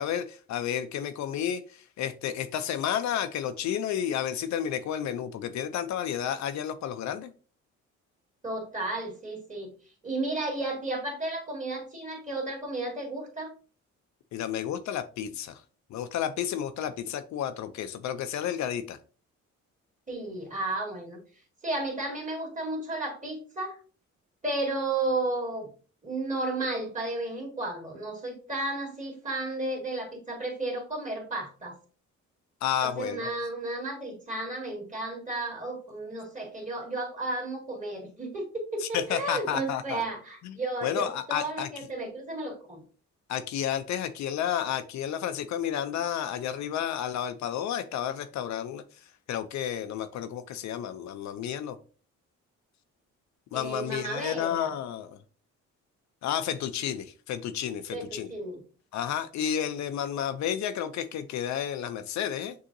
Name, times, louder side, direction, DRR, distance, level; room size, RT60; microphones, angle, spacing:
voice 1, 0.0-7.3 14.3-15.6 15.9-19.0 32.6-33.3 38.8-40.0 40.4-41.7 43.3-48.8 49.3-51.8 53.5-55.2 56.2-58.3 58.9-62.5, left 9 dB, 70° left, 10 dB, 0.5 m, -31 dB
voice 2, 8.4-9.7 10.0-13.5 20.1-21.2 21.6-23.8 24.4-25.7 26.0-31.8 32.8-42.8 53.5-54.7 57.9-58.6, right 2 dB, 25° right, 0 dB, 2.1 m, -33 dB
6.4 x 2.8 x 2.6 m, 0.38 s
cardioid pair, 90°, 30 cm